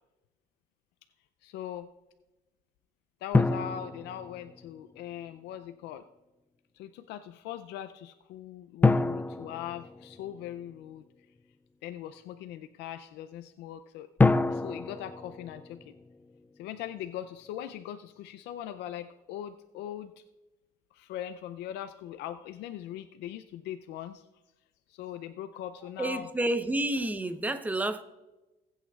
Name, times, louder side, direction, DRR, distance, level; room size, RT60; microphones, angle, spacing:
voice 1, 1.4-1.9 3.2-6.0 6.7-11.0 11.8-14.1 14.5-15.9 16.6-20.1 20.9-24.2 24.9-26.3, left 11 dB, 85° left, 0.5 m, -40 dB
sound 1, 3.3-5.0 8.8-10.7 14.2-16.5, left 3 dB, 10° left, 0.3 m, -28 dB
voice 2, 26.0-28.0, right 1 dB, 10° right, 0.7 m, -29 dB
18.5 x 8.5 x 2.4 m
cardioid pair, 110°, 17 cm